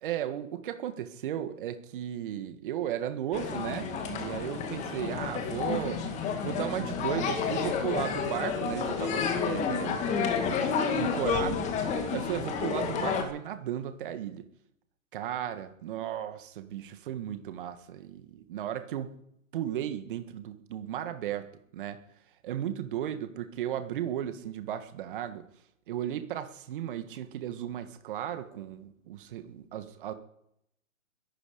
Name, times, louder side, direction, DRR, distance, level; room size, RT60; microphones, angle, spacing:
voice 1, 0.0-10.3 10.9-11.7 12.1-14.4 15.1-19.2 19.5-22.0 22.4-25.5 25.9-30.1, right 11 dB, 40° right, 9 dB, 1.6 m, -35 dB
sound 1, 3.3-13.2, left 6 dB, 15° left, 2.0 m, -30 dB
22.0 x 12.0 x 5.1 m, 0.74 s
hypercardioid pair, 145°, 41 cm